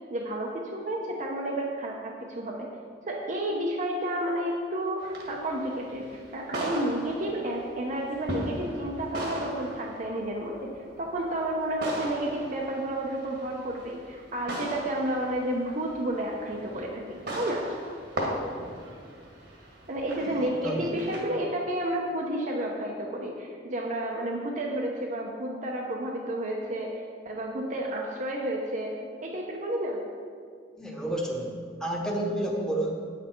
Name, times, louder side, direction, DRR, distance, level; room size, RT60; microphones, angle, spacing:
voice 1, 0.1-2.7 3.0-6.1 6.3-17.8 19.9-28.9 29.2-30.0, right 1 dB, 45° right, -1 dB, 0.8 m, -31 dB
sound 1, 5.0-21.2, right 1 dB, 65° right, 1.8 m, -38 dB
voice 2, 30.8-31.5 31.8-32.9, right 1 dB, 5° left, -2 dB, 1.1 m, -30 dB
8.9 x 7.6 x 4.5 m, 2.1 s
head